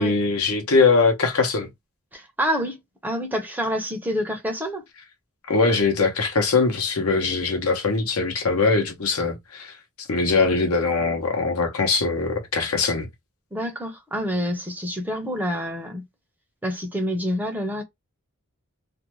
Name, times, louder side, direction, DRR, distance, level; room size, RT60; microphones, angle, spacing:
voice 1, 0.0-1.7 5.5-13.1, left 4 dB, 85° left, 0.8 m, -22 dB
voice 2, 2.1-2.8 3.0-4.8 13.5-16.0 16.6-17.8, equal, 10° right, 0.5 m, -27 dB
2.6 x 2.1 x 2.9 m
head